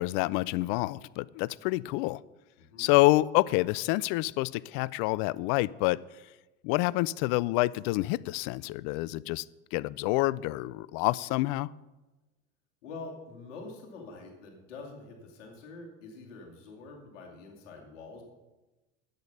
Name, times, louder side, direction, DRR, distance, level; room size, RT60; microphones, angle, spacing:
voice 1, 0.0-2.2 2.8-6.0 6.6-9.4 9.7-11.7, left 20 dB, 60° left, 22 dB, 0.5 m, -27 dB
voice 2, 2.6-2.9 12.8-18.2, left 3 dB, 75° left, 1 dB, 2.5 m, -45 dB
10.5 x 8.2 x 5.5 m, 1.1 s
hypercardioid pair, 75°, 39 cm